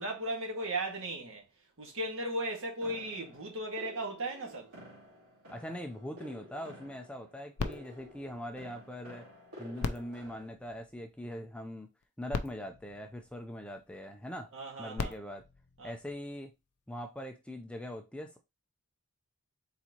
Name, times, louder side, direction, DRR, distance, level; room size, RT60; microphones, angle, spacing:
voice 1, 0.0-1.4 1.8-4.7 14.5-15.1 15.8-15.9, right 1 dB, 60° right, 1.7 m, -36 dB
sound 1, 2.8-10.5, equal, 90° right, 2.2 m, -52 dB
voice 2, 5.5-9.2 9.6-11.9 12.2-14.5 14.8-15.5 15.8-16.5 16.9-18.4, equal, 5° left, 0.5 m, -42 dB
sound 2, 7.6-9.2 9.7-11.4 12.0-12.1 12.3-13.9 14.7-16.5 17.2-17.3, left 4 dB, 85° left, 0.5 m, -41 dB
4.4 x 4.0 x 2.9 m
head